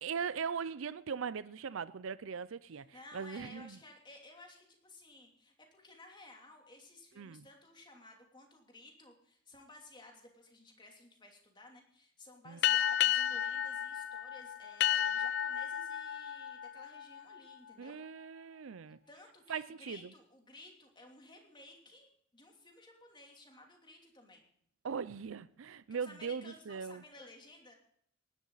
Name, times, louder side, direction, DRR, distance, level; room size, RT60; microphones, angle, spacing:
voice 1, 0.0-2.9 3.1-3.8 7.2-7.4 12.5-12.6 17.8-19.0 19.5-20.0 24.8-27.0, right 6 dB, 80° right, 0.5 m, -39 dB
voice 2, 2.7-18.0 19.1-24.5 25.9-27.8, left 2 dB, 25° left, 2.9 m, -56 dB
sound 1, 12.6-17.7, left 10 dB, 55° left, 0.6 m, -32 dB
19.0 x 11.0 x 4.0 m
head